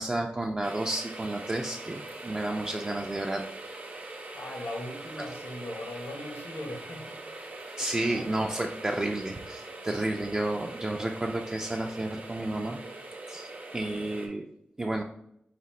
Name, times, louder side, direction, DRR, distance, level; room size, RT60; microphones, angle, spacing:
voice 1, 0.0-3.5 7.8-12.8 13.2-14.5 14.8-15.0, right 1 dB, 20° right, 0.3 m, -31 dB
sound 1, 0.6-14.3, right 2 dB, 45° right, 0.9 m, -42 dB
voice 2, 4.3-7.2 8.0-8.6, left 1 dB, 85° left, 0.9 m, -39 dB
4.9 x 2.0 x 4.2 m
wide cardioid pair, 115°, 4 cm